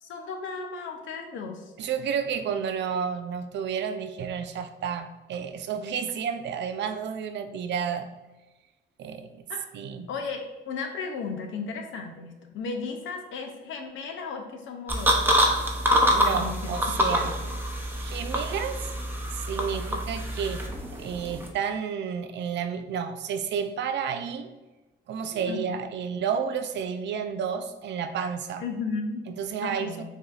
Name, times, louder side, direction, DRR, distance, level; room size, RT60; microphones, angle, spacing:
voice 1, 0.0-1.7 9.5-9.6 10.1-15.4 16.3-16.8 17.0-17.5 25.5-25.8 28.6-29.3 29.6-30.0, left 4 dB, 75° left, 4 dB, 0.6 m, -35 dB
voice 2, 1.8-8.1 9.0-9.5 9.7-10.1 16.1-17.4 17.9-18.9 19.3-20.7 21.0-24.5 25.1-28.6 29.3-30.0, right 7 dB, 65° right, 9 dB, 0.4 m, -31 dB
sound 1, 14.9-21.5, equal, 10° right, 0.6 m, -26 dB
4.9 x 2.6 x 2.4 m, 1.1 s
cardioid pair, 90°, 20 cm